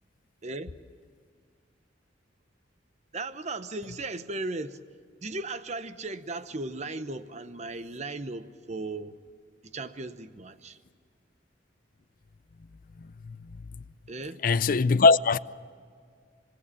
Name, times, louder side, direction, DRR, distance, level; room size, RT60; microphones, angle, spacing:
voice 1, 3.1-4.8 5.2-9.1 9.6-10.8 14.1-14.4, right 2 dB, 40° right, 0.9 m, -36 dB
voice 2, 14.4-15.4, left 4 dB, 45° left, 0.5 m, -20 dB
26.0 x 20.5 x 7.5 m
head